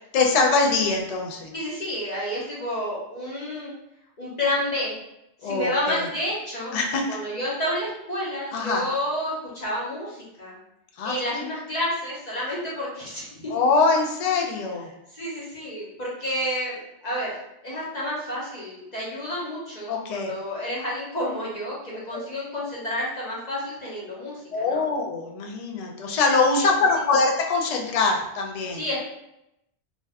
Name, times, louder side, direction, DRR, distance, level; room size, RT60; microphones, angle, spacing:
voice 1, 0.1-1.5 5.4-6.1 6.7-7.2 8.5-8.9 11.0-11.5 13.5-14.9 19.9-20.3 22.1-22.3 24.5-28.8, left 3 dB, 70° left, 1 dB, 0.3 m, -23 dB
voice 2, 1.5-3.7 4.2-4.9 5.4-6.7 7.1-10.6 11.0-13.6 15.1-16.7 17.0-17.4 17.6-24.8 26.6-26.7 28.7-29.0, left 1 dB, 40° left, -6 dB, 0.7 m, -30 dB
2.5 x 2.2 x 3.4 m, 0.84 s
omnidirectional pair, 1.2 m